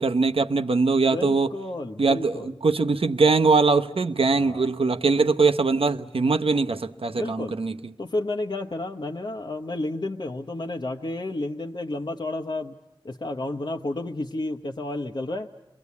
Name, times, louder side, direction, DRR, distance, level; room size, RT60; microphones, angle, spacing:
voice 1, 0.0-1.5 2.0-7.8, right 4 dB, 85° right, 0.9 m, -22 dB
voice 2, 1.1-2.5 4.3-4.7 7.1-7.5 8.0-12.8 13.0-15.5, left 2 dB, 55° left, 0.9 m, -31 dB
29.5 x 23.5 x 8.3 m
wide cardioid pair, 55°, 9 cm